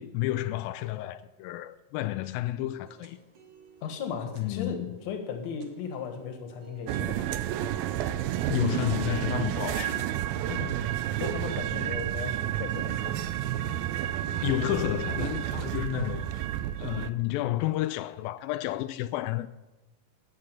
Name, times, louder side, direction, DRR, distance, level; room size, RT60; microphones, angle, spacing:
voice 1, 0.0-3.2 4.4-5.0 8.5-10.1 10.5-11.0 14.4-16.5 16.8-19.5, left 15 dB, 90° left, 2.4 m, -31 dB
sound 1, 2.7-16.1, right 5 dB, 55° right, 1.9 m, -54 dB
voice 2, 3.8-7.3 11.2-13.2, left 6 dB, 60° left, 2.4 m, -36 dB
sound 2, 6.9-17.1, right 12 dB, 90° right, 2.5 m, -30 dB
12.0 x 7.5 x 9.0 m
omnidirectional pair, 4.1 m